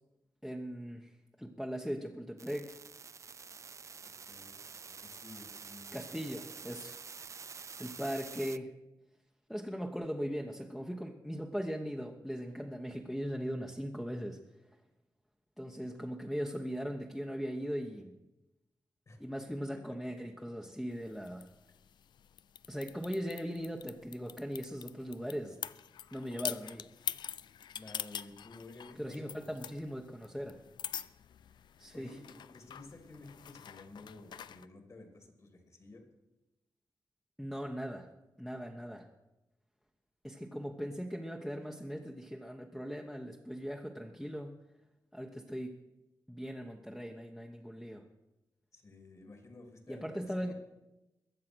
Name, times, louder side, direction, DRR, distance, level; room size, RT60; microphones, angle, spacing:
voice 1, 0.4-2.8 5.9-7.0 7.8-8.7 9.5-14.4 15.6-18.2 19.2-21.5 22.7-25.6 26.1-26.8 29.0-30.6 31.8-32.2 37.4-38.1 38.4-39.1 40.2-44.5 45.1-45.8 46.3-48.0 49.9-50.5, equal, ahead, 1 dB, 1.0 m, -39 dB
sound 1, 2.4-8.6, right 5 dB, 45° right, 0.4 m, -48 dB
voice 2, 4.3-4.6 4.9-6.0 19.1-19.2 27.7-29.6 31.9-36.0 48.7-50.5, left 2 dB, 45° left, 4 dB, 3.0 m, -53 dB
sound 2, 20.9-34.7, left 9 dB, 85° left, 0.4 m, -45 dB
21.5 x 7.5 x 6.2 m, 0.99 s
wide cardioid pair, 95°, 7 cm